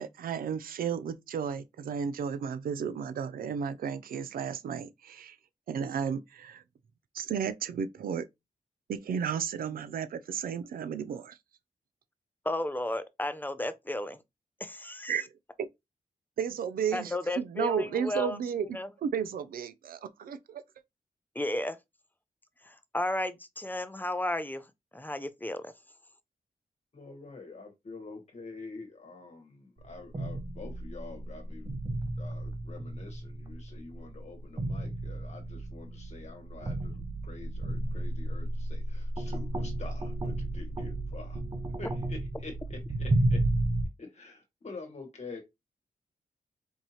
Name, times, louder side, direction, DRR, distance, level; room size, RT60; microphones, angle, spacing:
voice 1, 0.0-5.4 5.7-6.6 7.1-8.2 8.9-11.4 15.1-15.3 15.6-15.7 16.4-18.7 19.0-20.6, right 7 dB, 85° right, 0.5 m, -33 dB
voice 2, 12.4-14.2 14.6-15.2 16.9-18.9 21.3-21.8 22.6-24.7 24.9-25.7, left 1 dB, 15° left, 0.5 m, -33 dB
voice 3, 26.9-31.7 32.2-41.4 41.8-43.4 44.0-45.4, left 3 dB, 50° left, 1.4 m, -47 dB
sound 1, 29.8-43.9, right 1 dB, 30° right, 0.7 m, -33 dB
4.6 x 2.7 x 2.8 m
cardioid pair, 75°, 15 cm